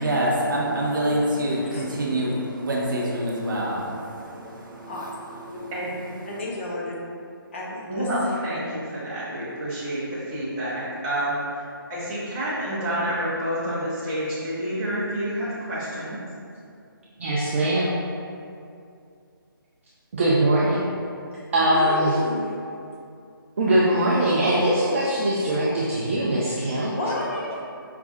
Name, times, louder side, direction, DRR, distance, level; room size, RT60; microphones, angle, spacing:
voice 1, 0.0-5.7 6.2-6.4, right 1 dB, 60° right, -3 dB, 0.7 m, -26 dB
voice 2, 6.3-6.9 7.5-8.1 21.5-22.5 27.0-27.6, left 1 dB, 35° left, -4 dB, 0.5 m, -31 dB
voice 3, 7.9-11.6 11.9-16.2, equal, 15° right, -9 dB, 0.8 m, -28 dB
voice 4, 17.2-17.9 20.1-20.9 21.5-22.1 23.6-26.9, right 1 dB, 35° right, -7 dB, 0.4 m, -21 dB
5.0 x 2.3 x 2.5 m, 2.5 s
figure-of-eight pair, 145°, 12 cm